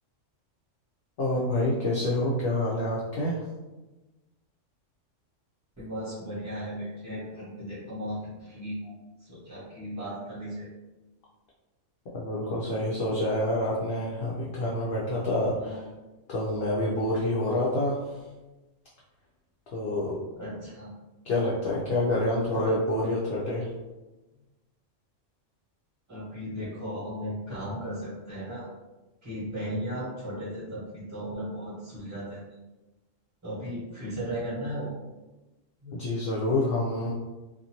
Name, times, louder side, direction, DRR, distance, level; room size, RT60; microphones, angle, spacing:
voice 1, 1.2-3.4 12.1-15.8 16.3-18.2 19.7-20.2 21.2-23.7 35.9-37.1, left 1 dB, 60° left, -5 dB, 0.7 m, -27 dB
voice 2, 5.8-8.9 9.2-10.7 15.6-15.8 20.4-20.9 22.5-22.7 26.1-28.7 29.2-32.4 33.4-34.9 35.8-36.0, equal, 15° right, -10 dB, 0.9 m, -36 dB
2.5 x 2.4 x 2.9 m, 1.1 s
omnidirectional pair, 1.3 m